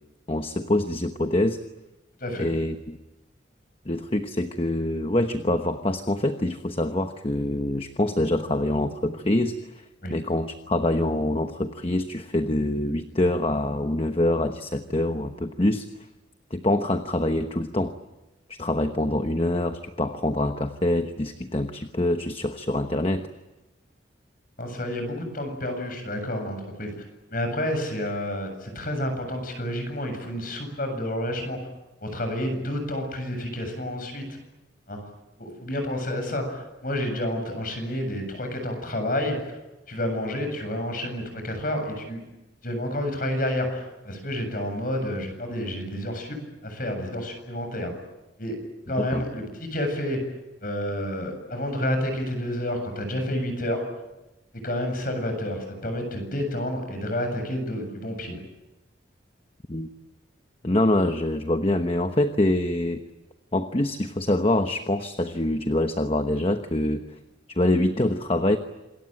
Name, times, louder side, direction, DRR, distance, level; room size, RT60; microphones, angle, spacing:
voice 1, 0.3-1.6 2.4-3.0 3.8-9.8 10.1-15.9 16.5-17.9 18.5-23.3 49.0-49.2 59.7-59.9 60.6-63.0 63.5-67.2 67.5-68.6, left 1 dB, 30° left, 7 dB, 1.1 m, -25 dB
voice 2, 24.6-26.9 27.3-31.6 32.0-34.3 34.9-35.0 35.4-39.6 39.9-42.2 42.6-47.9 48.4-48.6 48.9-50.2 50.6-53.8 54.6-58.4, left 1 dB, 45° left, 6 dB, 7.6 m, -29 dB
27.0 x 22.0 x 9.1 m, 1.0 s
head